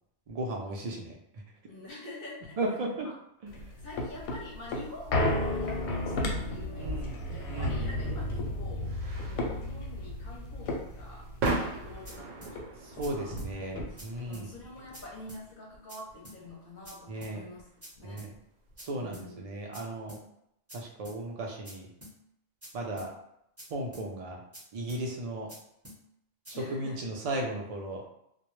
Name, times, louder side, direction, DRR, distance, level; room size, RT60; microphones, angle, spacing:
voice 1, 0.3-1.1 2.6-3.1 3.4-3.5 6.8-7.1 7.5-7.8 13.0-14.5 17.1-17.4 18.0-18.3 18.8-20.2 20.7-21.9 22.7-23.1 23.7-24.4 24.7-25.5 26.5-28.0, right 1 dB, 65° right, 0 dB, 0.3 m, -35 dB
voice 2, 1.7-2.8 3.0-3.1 3.8-13.4 13.9-14.0 14.2-17.7 18.0-18.2 19.0-19.5 26.5-27.1, left 2 dB, 50° left, -3 dB, 0.7 m, -47 dB
sound 1, 3.5-12.2 12.6-12.7 12.9-14.3 14.8-14.9, left 1 dB, 90° left, 0.9 m, -33 dB
sound 2, 8.0-18.8, right 3 dB, 90° right, 0.9 m, -40 dB
sound 3, 11.4-11.6 12.0-12.1 12.4-12.5 13.0-13.1 13.4-13.5 14.0-14.1 14.3-14.5 14.9-15.0 15.3-15.4 15.9-16.0 16.2-16.4 16.8-16.9 17.2-17.3 17.8-17.9 18.2-18.3 18.8-18.9 19.1-19.3 19.7-19.8 20.1-20.2 20.7-20.8 21.0-21.2 21.6-21.7 22.0-22.1 22.6-22.7 23.0-23.1 23.6-23.7 23.9-24.1 24.5-24.6 24.9-25.0 25.5-25.6 25.8-26.0 26.4-26.5, equal, 15° right, 0.8 m, -47 dB
2.2 x 2.0 x 3.0 m, 0.76 s
omnidirectional pair, 1.2 m